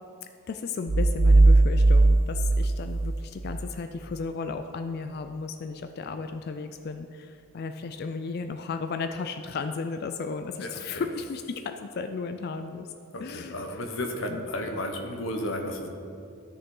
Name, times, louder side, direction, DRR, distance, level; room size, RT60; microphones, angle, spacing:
voice 1, 0.5-12.9 13.2-13.6 14.3-14.4, left 4 dB, 50° left, 7 dB, 0.3 m, -34 dB
sound 1, 0.9-3.7, right 2 dB, 45° right, 0.4 m, -19 dB
voice 2, 10.6-11.1 13.1-15.9, left 1 dB, 65° left, 4 dB, 1.0 m, -33 dB
13.0 x 6.6 x 3.8 m, 2.5 s
head